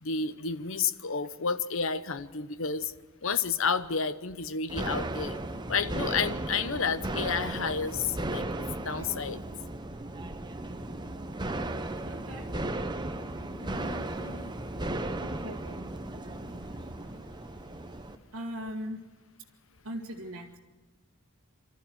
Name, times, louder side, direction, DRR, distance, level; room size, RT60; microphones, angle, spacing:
voice 1, 0.0-2.9 3.2-5.4 5.7-8.5 8.8-9.4 13.5-14.5, left 5 dB, 70° left, 13 dB, 0.9 m, -31 dB
sound 1, 4.7-18.2, right 1 dB, 20° right, 0.9 m, -35 dB
voice 2, 12.0-12.5 15.2-15.9 18.3-19.1 19.8-20.6, equal, 90° right, -3 dB, 1.7 m, -39 dB
25.0 x 13.5 x 9.2 m, 1.3 s
head